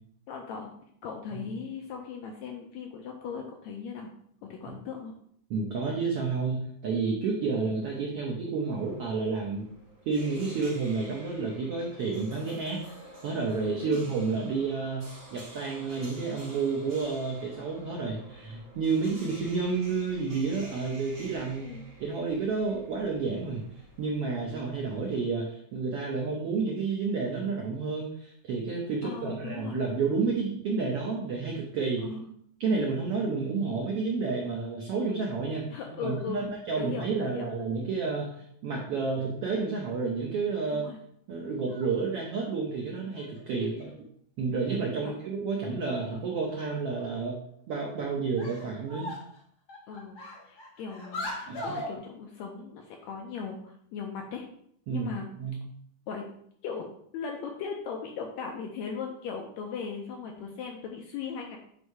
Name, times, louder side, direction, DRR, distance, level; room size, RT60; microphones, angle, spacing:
voice 1, 0.3-0.7 1.0-4.1 4.4-5.1 7.6-7.7 13.8-14.0 19.1-19.3 21.6-21.8 29.0-29.8 32.0-32.3 35.7-36.5 36.8-37.5 39.3-39.5 40.7-41.0 45.0-45.1 49.9-50.2 50.4-54.4 54.9-55.4 56.1-56.3 56.6-56.9 57.1-61.6, left 6 dB, 80° left, 1 dB, 1.6 m, -38 dB
voice 2, 5.5-9.7 10.1-12.8 13.2-21.7 22.0-23.6 24.0-32.0 32.6-40.9 41.3-43.9 44.4-47.4 47.7-49.1 51.5-51.7 54.9-55.6, right 4 dB, 80° right, 0 dB, 1.3 m, -30 dB
sound 1, 8.6-25.3, right 1 dB, 35° right, 0.5 m, -50 dB
sound 2, 41.5-42.0 43.1-44.0 45.1-45.2 45.6-45.8 46.1-46.2 46.5-47.2 47.7-47.9 48.4-49.4 49.7-51.9, left 1 dB, 55° left, 1.2 m, -40 dB
8.1 x 2.7 x 4.6 m, 0.67 s
omnidirectional pair, 3.8 m